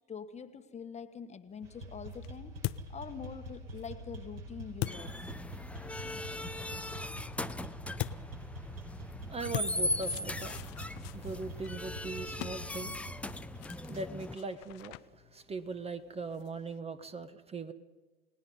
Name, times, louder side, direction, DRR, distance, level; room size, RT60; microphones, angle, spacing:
voice 1, 0.1-2.5 2.9-5.5, left 6 dB, 20° left, 9 dB, 1.5 m, -45 dB
sound 1, 1.5-5.9 8.0-16.8, left 20 dB, 50° left, 0.7 m, -44 dB
sound 2, 1.6-14.1, right 1 dB, 65° right, 5.2 m, -46 dB
sound 3, 4.9-14.3, left 2 dB, 5° left, 0.8 m, -39 dB
voice 2, 9.3-10.6 11.1-13.0 13.9-17.7, right 3 dB, 20° right, 10 dB, 1.3 m, -40 dB
29.5 x 19.0 x 5.4 m, 1.2 s
hypercardioid pair, 85°, 31 cm